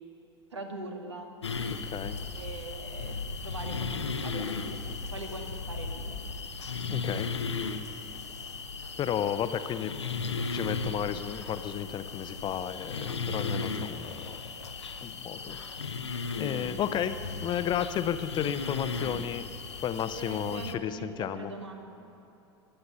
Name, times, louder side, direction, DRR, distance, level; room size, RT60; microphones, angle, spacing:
voice 1, 0.5-1.3 2.3-6.4 15.5-15.6 20.2-21.9, right 2 dB, 80° right, 3 dB, 1.8 m, -42 dB
sound 1, 1.4-20.8, left 4 dB, 80° left, 0.8 m, -36 dB
voice 2, 1.7-2.2 6.9-7.3 9.0-9.9 10.4-14.4 15.0-15.6 16.4-19.4 19.8-21.5, left 9 dB, 30° left, 12 dB, 0.7 m, -33 dB
22.0 x 7.9 x 6.8 m, 2.9 s
figure-of-eight pair, 80°, 14 cm